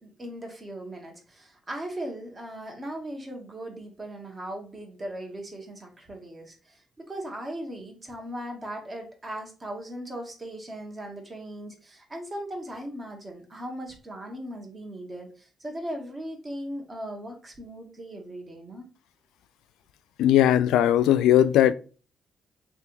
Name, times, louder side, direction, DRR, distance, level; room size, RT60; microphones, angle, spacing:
voice 1, 0.0-18.9, right 1 dB, 25° right, 1.2 m, -38 dB
voice 2, 20.2-21.7, left 11 dB, 90° left, 0.3 m, -19 dB
3.3 x 2.5 x 4.5 m
cardioid pair, 90°, 0 cm